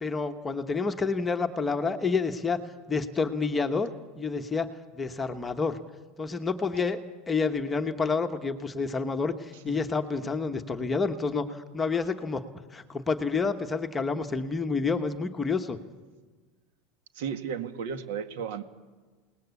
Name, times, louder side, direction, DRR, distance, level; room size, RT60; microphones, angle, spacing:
voice 1, 0.0-2.6 2.9-3.9 4.2-4.7 4.9-5.8 6.2-7.0 7.3-15.8, left 4 dB, 10° left, 7 dB, 1.0 m, -29 dB
voice 2, 17.1-18.6, right 7 dB, 70° right, 9 dB, 2.1 m, -33 dB
29.0 x 19.5 x 8.3 m, 1.4 s
supercardioid pair, 175°, 0 cm